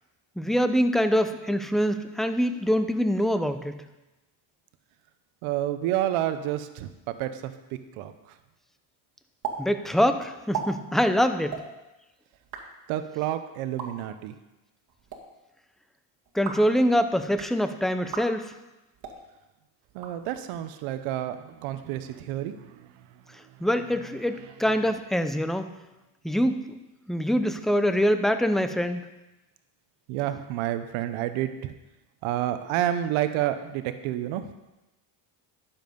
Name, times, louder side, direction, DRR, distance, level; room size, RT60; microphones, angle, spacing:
voice 1, 0.4-3.8 9.6-11.6 16.3-18.5 23.6-25.7 26.2-26.6 27.1-29.0, equal, ahead, 9 dB, 0.6 m, -24 dB
voice 2, 5.4-6.9 7.2-7.5 8.0-8.3 12.9-14.3 19.9-22.9 23.6-23.7 24.3-24.4 24.7-24.9 30.1-31.7 32.2-34.5, right 12 dB, 80° right, 10 dB, 0.9 m, -29 dB
sound 1, 9.4-9.6 9.8-9.9 10.4-10.7 11.4-11.6 12.3-12.6 13.6-13.9 14.9-15.2 16.3-16.7 17.2-17.5 18.0-18.3 18.9-19.2 19.9-20.6, right 7 dB, 45° right, 2.1 m, -36 dB
11.5 x 7.3 x 5.3 m, 1.0 s
cardioid pair, 100°, 49 cm